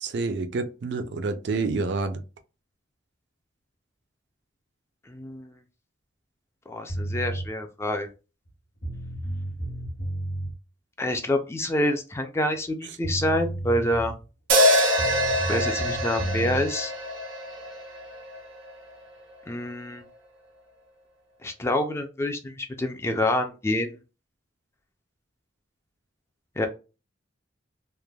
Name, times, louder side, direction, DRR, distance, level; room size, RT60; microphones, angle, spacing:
voice 1, 0.0-2.2, right 3 dB, 60° right, 0.4 m, -28 dB
voice 2, 5.1-5.6 6.7-8.1 11.0-14.1 15.5-16.9 19.5-20.0 21.4-24.0 26.6-26.7, left 1 dB, 15° left, 0.3 m, -27 dB
sound 1, 6.9-7.5 8.5-8.6 8.8-10.5 12.7-12.8 13.0-14.2 15.0-16.7, right 1 dB, 65° left, 1.1 m, -32 dB
sound 2, 14.5-18.8, equal, 80° right, 0.9 m, -25 dB
3.2 x 2.1 x 2.2 m
head